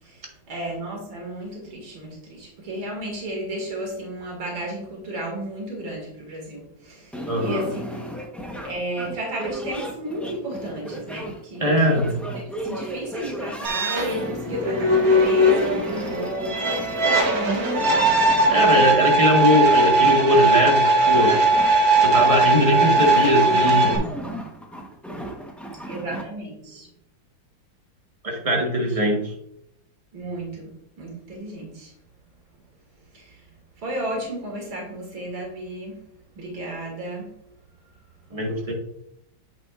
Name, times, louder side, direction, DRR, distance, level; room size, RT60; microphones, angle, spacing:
voice 1, 0.0-8.1 8.6-12.0 12.3-19.0 24.1-24.4 25.9-26.9 30.1-30.7 31.0-31.9 33.1-33.5 33.8-36.0 36.4-37.3, right 1 dB, 90° right, -1 dB, 2.8 m, -33 dB
sound 1, 7.1-26.2, right 1 dB, ahead, 0.3 m, -35 dB
voice 2, 7.3-7.7 11.6-12.2 18.5-21.3 22.0-24.1 26.1-26.2 28.2-29.3 38.3-38.7, equal, 20° right, 1 dB, 1.1 m, -20 dB
sound 2, 13.6-24.0, right 2 dB, 55° right, 1.5 m, -19 dB
8.5 x 6.0 x 2.4 m, 0.75 s
omnidirectional pair, 2.1 m